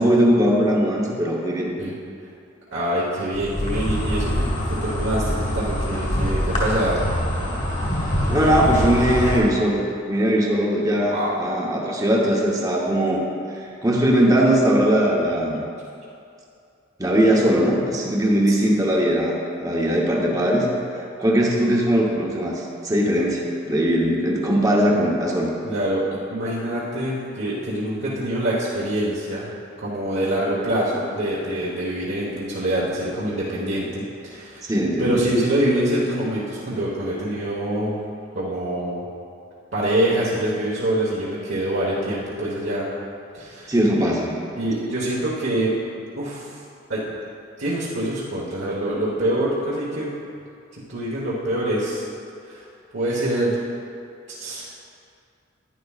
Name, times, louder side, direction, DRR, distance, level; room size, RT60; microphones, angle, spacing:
voice 1, 0.0-1.7 8.3-9.8 10.1-13.2 13.5-15.6 17.0-20.7 21.2-25.5 34.6-35.2 43.7-44.3, equal, 20° right, -2 dB, 1.0 m, -20 dB
voice 2, 2.7-7.0 11.1-11.3 18.5-18.6 25.6-26.0 26.3-29.5 29.8-34.7 35.0-38.0 38.3-39.1 39.7-42.9 43.3-43.7 44.6-45.7 46.1-46.5 46.9-47.1 47.6-50.1 50.9-52.0 52.5-52.6 52.9-53.6 54.3-54.9, right 1 dB, 65° right, -8 dB, 1.3 m, -25 dB
Insect, 3.3-9.4, equal, 35° left, 2.0 m, -24 dB
10.5 x 10.0 x 2.4 m, 2.5 s
head